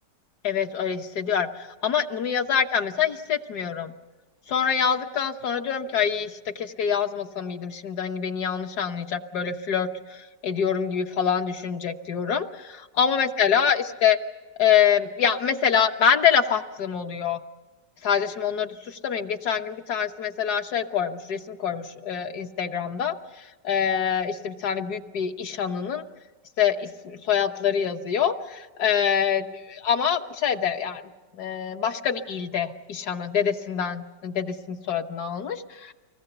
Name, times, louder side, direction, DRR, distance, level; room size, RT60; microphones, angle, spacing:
voice 1, 0.4-3.9 4.5-14.2 14.6-17.4 18.0-23.1 23.6-26.0 26.6-31.0 31.3-35.9, left 7 dB, 70° left, 5 dB, 1.7 m, -25 dB
25.0 x 19.5 x 8.0 m, 1.2 s
omnidirectional pair, 1.8 m